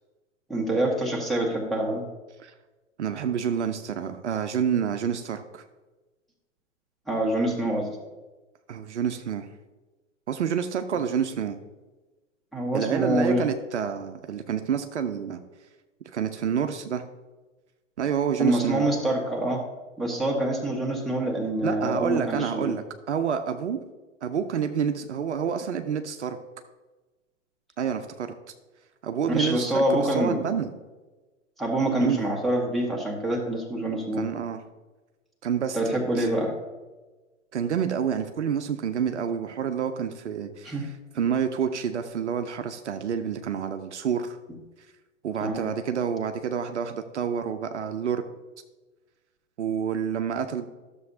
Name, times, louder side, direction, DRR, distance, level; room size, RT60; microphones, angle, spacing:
voice 1, 0.5-2.0 7.1-8.0 12.5-13.4 18.4-19.6 20.0-22.7 29.3-30.4 31.6-34.2 35.7-36.5 40.6-40.9 45.4-45.7, right 1 dB, ahead, -2 dB, 1.7 m, -26 dB
voice 2, 3.0-5.6 8.7-9.5 10.3-11.6 12.7-15.4 16.1-17.0 18.0-18.8 21.6-23.8 24.2-26.4 27.8-28.3 29.0-30.7 32.0-32.2 33.9-34.6 35.4-36.3 37.5-44.4 45.2-48.2 49.6-50.7, right 7 dB, 65° right, 8 dB, 0.7 m, -28 dB
12.5 x 7.0 x 2.7 m, 1.2 s
figure-of-eight pair, 105°, 38 cm